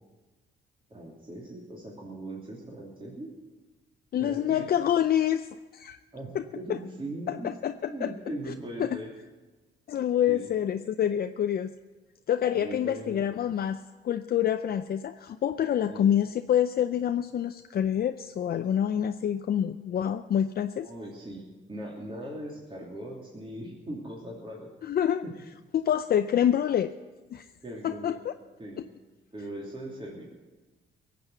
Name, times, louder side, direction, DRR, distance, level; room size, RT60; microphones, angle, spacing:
voice 1, 0.9-3.3 4.2-4.7 6.1-7.5 7.9-9.1 10.3-10.5 12.5-13.2 15.8-16.1 20.8-24.7 25.2-25.3 27.6-28.2 28.6-28.8 29.3-30.2, right 1 dB, 25° right, -4 dB, 2.9 m, -40 dB
voice 2, 4.1-6.0 6.3-6.4 6.7-6.8 7.3-8.1 8.8-9.0 9.9-11.7 12.3-20.9 24.8-25.2 25.7-26.9 27.3-27.5 27.8-28.3, left 10 dB, 50° left, 9 dB, 0.5 m, -27 dB
17.0 x 7.8 x 8.0 m, 1.3 s
cardioid pair, 90°, 20 cm